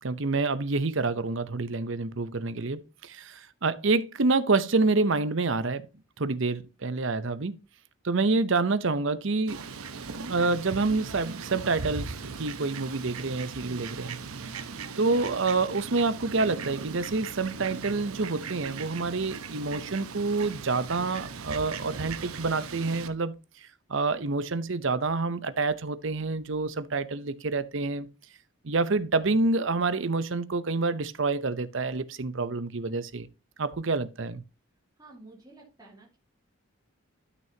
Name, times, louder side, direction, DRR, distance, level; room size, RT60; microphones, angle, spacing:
voice 1, 0.0-5.9 6.2-7.5 8.0-9.6 10.3-14.2 15.0-23.3 23.6-28.1 28.6-33.3 33.6-34.4, right 3 dB, 60° right, 0.7 m, -27 dB
Fowl, 9.5-23.1, right 5 dB, 85° right, 0.9 m, -39 dB
voice 2, 35.0-36.2, right 2 dB, 15° right, 2.7 m, -51 dB
12.5 x 6.1 x 2.9 m
head